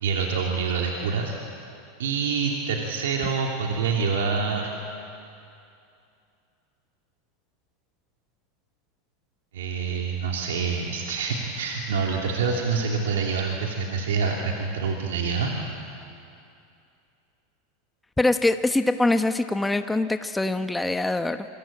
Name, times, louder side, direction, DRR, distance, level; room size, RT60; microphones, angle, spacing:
voice 1, 0.0-1.4 2.0-4.7 9.5-15.5, right 5 dB, 80° right, 0 dB, 2.8 m, -26 dB
voice 2, 18.2-21.5, left 2 dB, 10° left, 8 dB, 1.1 m, -23 dB
27.5 x 23.5 x 8.9 m, 2.6 s
hypercardioid pair, 105°, 0 cm